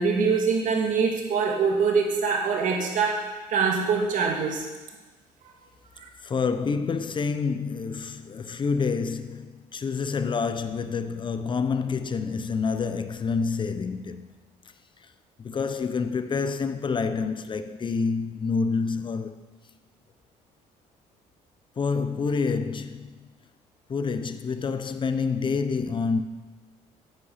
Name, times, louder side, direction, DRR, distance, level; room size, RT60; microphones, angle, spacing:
voice 1, 0.0-4.6 6.0-6.1, right 5 dB, 60° right, 2.5 m, -24 dB
voice 2, 6.2-14.3 15.4-19.4 21.8-23.3 23.9-26.2, left 5 dB, 35° left, 0.9 m, -28 dB
10.5 x 8.4 x 6.7 m
cardioid pair, 90°, 15 cm